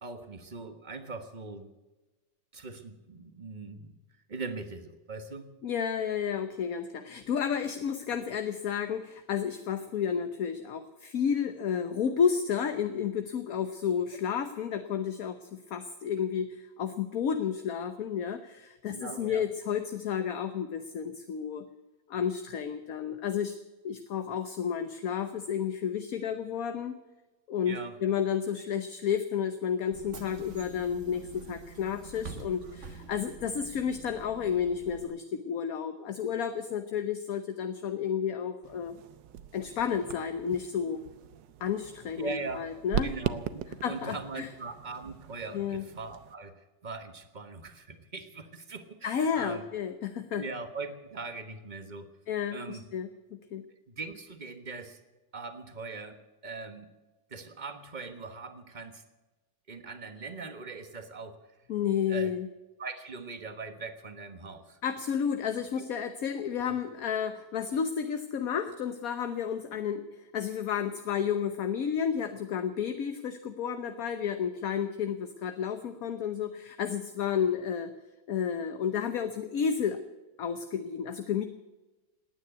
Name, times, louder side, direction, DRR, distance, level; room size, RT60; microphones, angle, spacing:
voice 1, 0.0-1.7 2.5-4.0 4.3-5.5 18.9-19.4 27.7-28.0 42.2-42.7 43.0-49.6 50.3-52.1 52.5-52.8 53.9-55.0 55.3-56.9 57.3-59.0 59.7-61.4 62.1-62.3 62.8-64.8 66.7-66.8, right 3 dB, 25° right, 8 dB, 1.3 m, -41 dB
voice 2, 5.6-21.6 22.1-23.6 23.8-26.9 27.5-39.0 39.5-41.0 41.6-43.1 43.8-44.5 45.5-45.8 49.0-50.4 52.3-53.7 61.7-62.5 64.8-77.9 78.3-80.0 80.4-81.4, left 7 dB, 55° left, 9 dB, 1.2 m, -31 dB
Bus / Engine, 29.9-35.0, right 4 dB, 45° right, 1.4 m, -46 dB
sound 1, 38.6-46.4, right 10 dB, 75° right, 1.4 m, -39 dB
19.0 x 9.6 x 8.1 m, 1.1 s
omnidirectional pair, 2.0 m